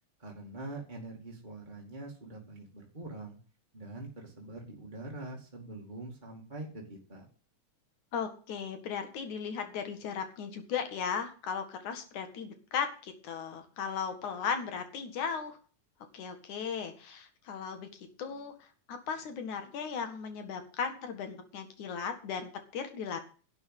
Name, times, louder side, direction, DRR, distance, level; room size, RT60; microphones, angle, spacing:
voice 1, 0.2-3.4 3.7-7.3, right 2 dB, 15° right, -1 dB, 2.1 m, -44 dB
voice 2, 8.1-15.6 16.1-17.9 18.2-18.5 18.9-23.2, left 6 dB, 90° left, 7 dB, 3.3 m, -36 dB
11.5 x 6.9 x 8.3 m, 0.39 s
omnidirectional pair, 3.3 m